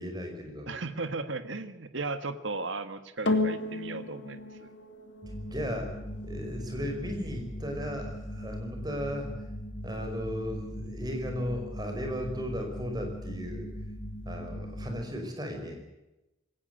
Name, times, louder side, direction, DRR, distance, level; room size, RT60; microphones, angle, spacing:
voice 1, 0.0-0.7 5.3-5.9 6.2-9.3 9.8-13.7 14.3-15.8, equal, 20° right, 3 dB, 5.3 m, -36 dB
voice 2, 0.7-4.7, right 3 dB, 70° right, 10 dB, 1.6 m, -36 dB
sound 1, 3.3-11.8 12.5-12.6, left 2 dB, 60° left, 2.7 m, -37 dB
sound 2, 5.2-15.0, equal, 45° left, 3.0 m, -39 dB
20.5 x 18.0 x 7.9 m, 0.98 s
head